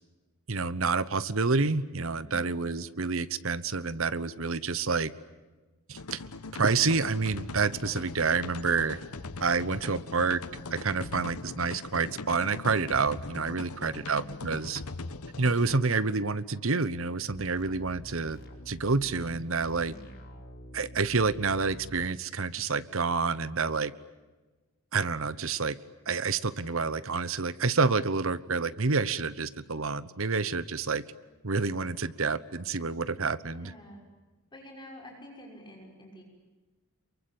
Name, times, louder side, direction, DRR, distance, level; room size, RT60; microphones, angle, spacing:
voice 1, 0.5-5.1 5.9-6.2 6.5-9.0 9.4-10.4 10.7-14.8 15.4-18.4 18.7-19.9 20.7-23.9 24.9-25.8 26.1-31.0 31.4-33.7, right 4 dB, 65° right, 16 dB, 1.1 m, -28 dB
voice 2, 2.1-2.6 13.6-14.3 19.8-20.1 33.4-34.0 34.5-36.2, equal, 20° left, 0 dB, 6.3 m, -49 dB
sound 1, 5.9-15.8, left 3 dB, 80° left, 1.1 m, -41 dB
sound 2, 17.5-22.1, equal, 45° left, 4.8 m, -46 dB
28.5 x 23.5 x 8.7 m, 1.2 s
head